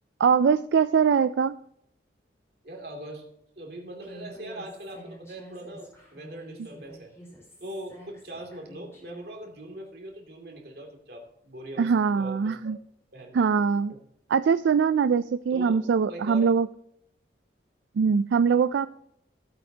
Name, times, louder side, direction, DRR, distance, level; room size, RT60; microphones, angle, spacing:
voice 1, 0.2-1.6 11.8-12.8 13.3-13.9 14.3-16.7 18.0-18.9, right 6 dB, 85° right, 12 dB, 0.3 m, -22 dB
voice 2, 2.6-3.2 3.6-7.1 7.6-12.7 13.1-13.4 13.9-14.0 15.5-16.5, right 1 dB, 60° right, 1 dB, 2.6 m, -41 dB
Human voice, 4.0-9.2, equal, 15° left, 3.9 m, -48 dB
16.0 x 8.6 x 2.8 m, 0.74 s
head